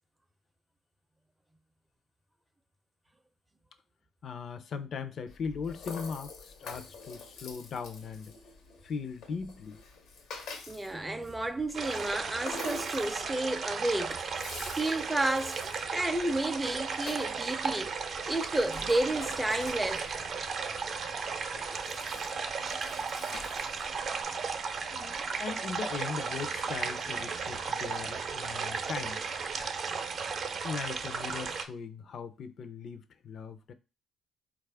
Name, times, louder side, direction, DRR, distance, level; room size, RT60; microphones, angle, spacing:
voice 1, 4.2-8.3 8.8-9.8 24.8-29.3 30.6-33.7, left 5 dB, 60° left, 0.5 m, -39 dB
Rattle (instrument), 5.3-24.2, left 3 dB, 80° left, 0.9 m, -47 dB
voice 2, 10.7-15.6 15.9-18.0 18.3-20.2, right 2 dB, 10° right, 0.5 m, -31 dB
sound 1, 11.7-31.6, right 5 dB, 55° right, 0.6 m, -35 dB
4.1 x 2.4 x 3.3 m
cardioid pair, 90°, 0 cm